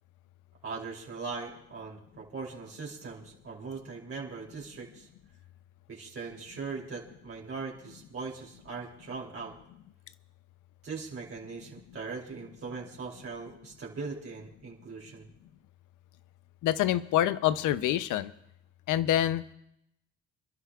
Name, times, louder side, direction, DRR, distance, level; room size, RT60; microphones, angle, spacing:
voice 1, 0.6-5.1 5.9-9.5 10.8-15.3, right 4 dB, 45° right, -3 dB, 3.1 m, -40 dB
voice 2, 16.6-18.3 18.9-19.5, left 12 dB, 85° left, 15 dB, 0.6 m, -26 dB
29.5 x 11.5 x 2.4 m, 0.78 s
cardioid pair, 90°, 30 cm